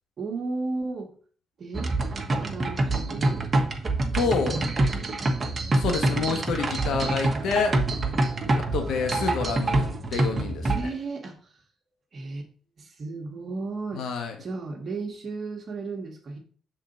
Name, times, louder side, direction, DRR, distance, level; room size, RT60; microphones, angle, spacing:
voice 1, 0.2-1.1 1.6-1.9 2.4-3.4 4.2-5.1 8.4-8.6 10.7-11.6 12.1-12.5 12.8-14.0 14.4-16.4, right 3 dB, 50° right, 2 dB, 1.3 m, -34 dB
sound 1, 1.7-10.8, right 2 dB, 30° right, 1.1 m, -26 dB
voice 2, 4.1-4.6 5.7-7.8 8.5-10.7 13.9-14.3, left 5 dB, 80° left, 4 dB, 1.2 m, -28 dB
6.5 x 3.9 x 5.3 m, 0.44 s
cardioid pair, 90°, 0 cm